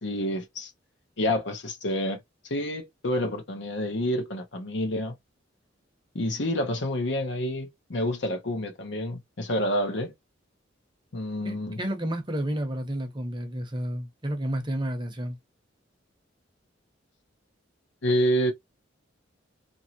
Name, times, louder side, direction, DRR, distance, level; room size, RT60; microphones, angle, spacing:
voice 1, 0.0-0.7 1.2-2.2 2.4-5.1 6.1-10.1 11.1-11.8 18.0-18.5, equal, 65° left, 0.8 m, -28 dB
voice 2, 11.4-15.4, right 1 dB, 25° right, 0.8 m, -31 dB
2.9 x 2.7 x 2.8 m
head